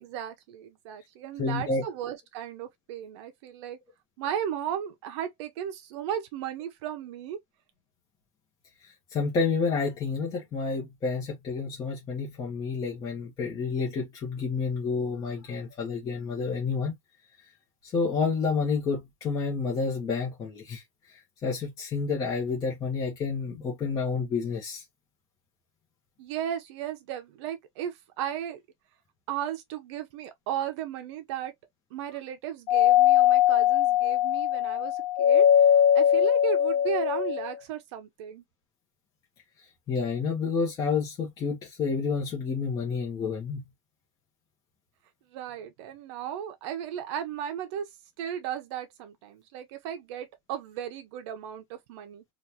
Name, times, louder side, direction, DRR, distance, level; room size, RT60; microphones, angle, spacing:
voice 1, 0.0-3.8 4.2-7.4 26.2-28.6 29.3-31.5 31.9-38.4 45.3-52.2, right 9 dB, 60° right, 0.6 m, -35 dB
voice 2, 1.4-1.8 8.8-16.9 17.8-24.8 39.9-43.6, left 4 dB, 20° left, 0.8 m, -29 dB
Doorbell, 32.7-37.5, left 10 dB, 70° left, 0.7 m, -21 dB
3.3 x 2.4 x 2.7 m
supercardioid pair, 175°, 16 cm